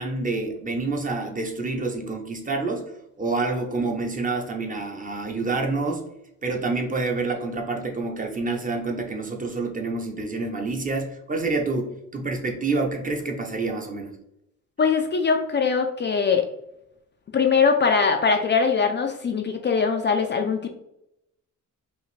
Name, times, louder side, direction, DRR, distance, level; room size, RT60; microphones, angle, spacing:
voice 1, 0.0-2.8 3.2-6.0 6.4-14.1, right 3 dB, 25° right, 2 dB, 0.7 m, -27 dB
voice 2, 14.8-16.5 17.3-20.7, left 5 dB, 35° left, 4 dB, 0.4 m, -21 dB
5.5 x 2.5 x 3.2 m, 0.82 s
cardioid pair, 140°, 32 cm